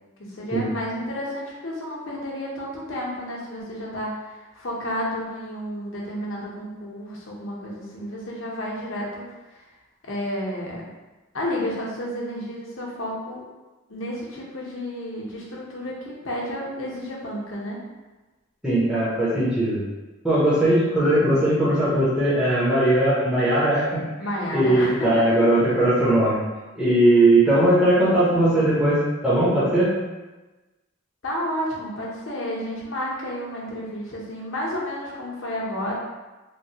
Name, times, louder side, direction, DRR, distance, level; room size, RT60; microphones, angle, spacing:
voice 1, 0.2-9.3 9.5-9.6 10.0-10.8 11.3-13.4 13.9-17.8 24.2-25.4 31.2-35.9, equal, 80° left, -4 dB, 0.8 m, -31 dB
voice 2, 18.6-19.8 20.2-24.0 24.5-26.4 26.8-29.9, right 1 dB, 5° right, -10 dB, 0.7 m, -19 dB
3.2 x 2.2 x 2.7 m, 1.2 s
head